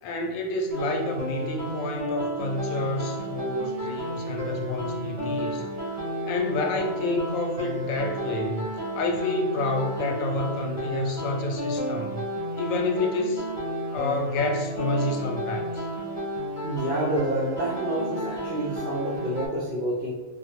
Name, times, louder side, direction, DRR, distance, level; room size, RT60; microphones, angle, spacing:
voice 1, 0.0-5.7 6.2-8.7 8.9-12.2 12.6-13.5 13.9-15.9, left 2 dB, 85° left, 3 dB, 1.0 m, -29 dB
sound 1, 0.7-19.5, equal, 35° right, 1.3 m, -32 dB
voice 2, 16.6-20.1, right 1 dB, 60° right, -4 dB, 0.8 m, -28 dB
3.1 x 2.4 x 3.0 m, 1.3 s
omnidirectional pair, 1.3 m